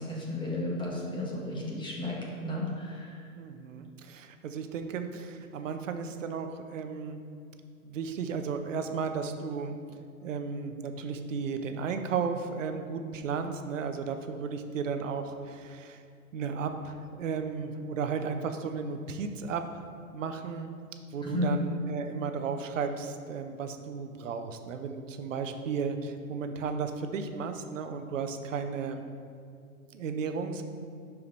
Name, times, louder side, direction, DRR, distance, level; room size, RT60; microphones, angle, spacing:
voice 1, 0.0-2.2 2.4-3.2 21.2-21.5, left 1 dB, 10° left, -4 dB, 1.4 m, -33 dB
voice 2, 3.4-7.2 7.8-9.8 10.2-16.0 16.3-19.8 20.1-20.7 21.1-29.0 29.9-30.6, right 5 dB, 60° right, 7 dB, 0.8 m, -34 dB
11.5 x 4.7 x 3.2 m, 2.3 s
figure-of-eight pair, 115°, 44 cm